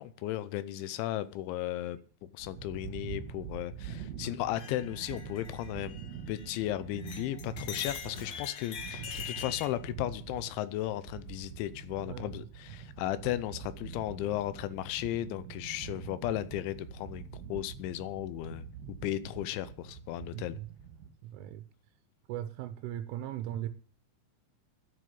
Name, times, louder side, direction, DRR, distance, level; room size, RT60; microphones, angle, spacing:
voice 1, 0.0-2.0 2.3-5.9 6.3-18.6 19.0-20.6, left 13 dB, 80° left, 3.0 m, -35 dB
sound 1, 2.4-21.1, right 7 dB, 50° right, 3.4 m, -45 dB
sound 2, 4.5-6.7 7.0-9.7, left 7 dB, 55° left, 2.0 m, -43 dB
voice 2, 20.3-20.7 21.2-21.6 22.3-23.7, right 12 dB, 85° right, 3.3 m, -38 dB
10.0 x 7.9 x 9.5 m
omnidirectional pair, 5.5 m